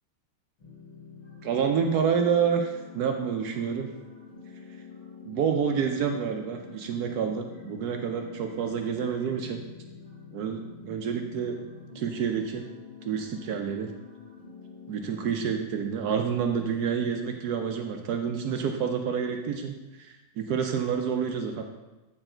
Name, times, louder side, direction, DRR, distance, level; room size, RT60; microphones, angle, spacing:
sound 1, 0.6-15.5, left 6 dB, 65° left, 3.8 m, -47 dB
voice 1, 1.4-3.9 5.2-9.6 10.3-11.6 11.9-12.6 13.0-13.9 14.9-21.6, right 7 dB, 70° right, 4 dB, 0.9 m, -28 dB
8.7 x 4.5 x 4.4 m, 1.1 s
omnidirectional pair, 2.2 m